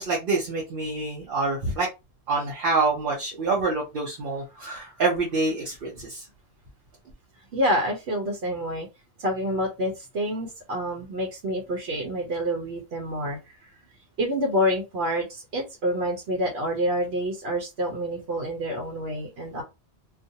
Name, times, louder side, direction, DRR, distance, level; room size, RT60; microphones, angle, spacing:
voice 1, 0.0-1.9 2.3-6.2, right 3 dB, 60° right, 0.9 m, -26 dB
voice 2, 7.5-8.9 9.2-13.7 14.2-19.6, equal, 85° right, 1.0 m, -27 dB
2.4 x 2.3 x 2.7 m
omnidirectional pair, 1.1 m